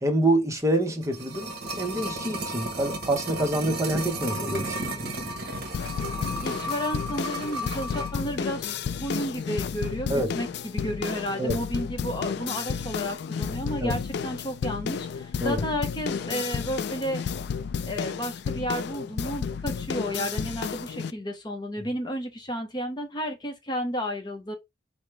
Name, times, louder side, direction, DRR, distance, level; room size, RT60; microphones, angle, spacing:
voice 1, 0.0-5.0 10.1-10.3 11.4-11.6 13.8-14.0 15.4-15.6, right 1 dB, 15° right, 0.7 m, -26 dB
sound 1, 0.8-8.2 8.5-8.6, right 1 dB, 55° right, 1.0 m, -33 dB
sound 2, 5.7-21.1, left 6 dB, 60° left, 0.3 m, -32 dB
voice 2, 6.4-8.7 9.0-17.2 17.8-24.5, equal, 20° left, 0.7 m, -32 dB
4.9 x 2.1 x 4.5 m
head